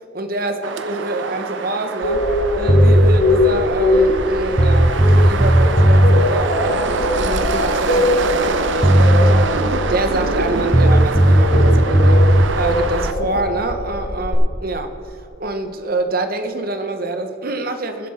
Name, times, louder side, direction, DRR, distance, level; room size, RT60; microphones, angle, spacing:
voice 1, 0.1-2.3 2.6-18.1, right 2 dB, 45° right, 7 dB, 1.0 m, -26 dB
sound 1, 0.6-13.1, right 4 dB, 65° right, 0.7 m, -25 dB
sound 2, 2.0-14.3, left 2 dB, 75° left, 1.7 m, -22 dB
sound 3, 2.7-3.2 4.2-4.3 4.6-6.2 8.5-8.6 8.8-9.5 10.7-12.5, right 1 dB, 15° right, 0.5 m, -13 dB
20.5 x 7.6 x 4.3 m, 2.8 s
head